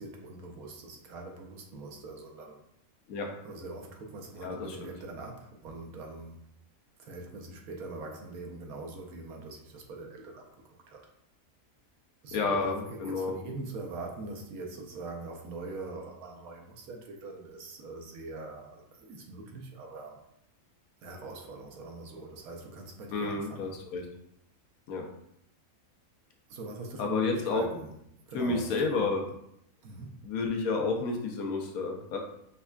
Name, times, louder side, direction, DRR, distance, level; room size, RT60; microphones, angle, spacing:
voice 1, 0.0-2.6 3.4-6.4 7.0-11.0 12.2-20.2 21.0-23.8 26.5-27.9 28.3-29.1 29.8-30.1, right 3 dB, 85° right, 1 dB, 1.2 m, -42 dB
voice 2, 4.4-4.9 12.3-13.4 23.1-24.0 24.9-25.0 27.0-27.6 28.3-29.2 30.2-32.2, left 4 dB, 85° left, 2 dB, 1.1 m, -30 dB
5.3 x 2.4 x 2.2 m, 0.75 s
omnidirectional pair, 1.5 m